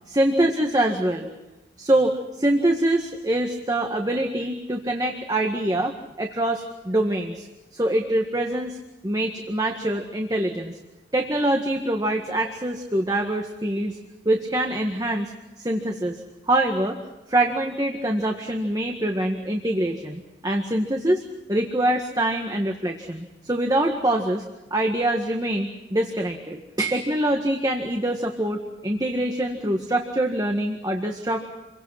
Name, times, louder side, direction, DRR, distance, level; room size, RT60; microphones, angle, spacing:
voice 1, 0.1-1.3 1.8-7.5 7.7-8.8 9.0-10.8 11.1-14.0 14.2-15.3 15.6-16.2 16.5-17.0 17.3-21.2 21.5-24.4 24.7-31.4, right 1 dB, 20° right, 3 dB, 1.7 m, -24 dB
28.5 x 23.5 x 5.8 m, 1.1 s
head